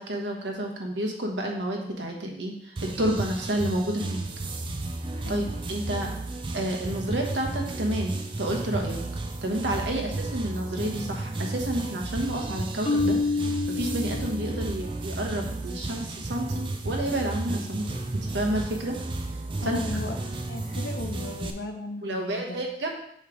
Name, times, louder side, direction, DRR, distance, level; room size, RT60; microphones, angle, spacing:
voice 1, 0.0-4.2 5.3-6.1 6.5-9.0 9.4-17.9 18.2-18.9 19.3-20.2 22.0-22.9, right 1 dB, 80° right, 1 dB, 1.2 m, -30 dB
sound 1, 2.8-21.5, right 2 dB, 25° right, 0.4 m, -33 dB
Marimba xylophone, 12.8-14.9, left 3 dB, 35° left, 0.5 m, -28 dB
voice 2, 19.6-20.1 20.5-22.6, left 1 dB, 65° left, 4 dB, 0.8 m, -36 dB
6.5 x 3.3 x 5.1 m, 0.71 s
head